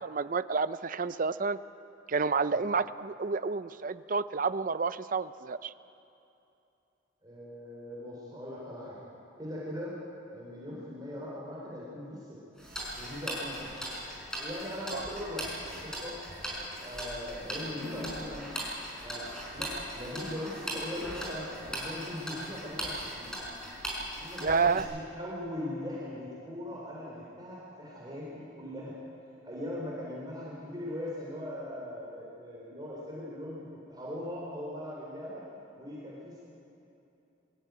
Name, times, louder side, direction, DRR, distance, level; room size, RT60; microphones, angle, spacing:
voice 1, 0.0-1.6 2.1-5.7 14.9-15.0 24.4-24.9, right 4 dB, 45° right, 14 dB, 0.5 m, -29 dB
voice 2, 7.2-9.0 9.4-9.9 10.3-12.4 13.0-13.7 14.4-16.2 16.8-18.6 19.0-23.4 24.2-28.9 29.4-35.5 35.8-36.4, left 1 dB, 20° right, -5 dB, 3.8 m, -40 dB
Tick-tock, 12.6-24.8, equal, 5° left, 5.5 m, -39 dB
22.0 x 15.0 x 9.4 m, 2.8 s
head